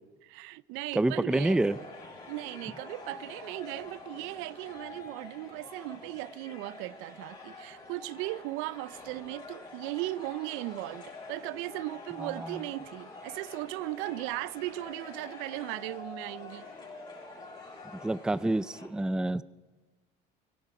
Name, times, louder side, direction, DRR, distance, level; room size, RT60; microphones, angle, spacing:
voice 1, 0.2-1.6 2.3-16.7, right 19 dB, 80° right, 0.5 m, -37 dB
voice 2, 0.9-1.8 12.2-12.6 18.0-19.4, right 2 dB, 5° right, 0.4 m, -28 dB
sound 1, 1.3-18.9, left 3 dB, 25° left, 6.9 m, -47 dB
23.0 x 12.0 x 4.9 m
cardioid pair, 120°, 21 cm